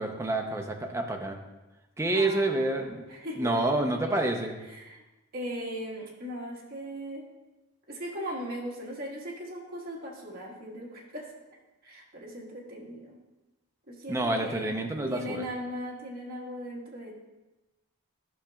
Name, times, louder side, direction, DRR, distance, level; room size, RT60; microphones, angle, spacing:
voice 1, 0.0-1.4 2.0-3.1 3.4-4.6 14.1-15.4, right 2 dB, 15° right, 3 dB, 0.6 m, -28 dB
voice 2, 2.1-3.7 4.7-5.0 5.3-7.2 7.9-11.3 11.8-13.1 13.9-14.7 15.1-17.1, equal, 45° right, -3 dB, 1.5 m, -38 dB
11.5 x 6.1 x 2.3 m, 1.1 s
head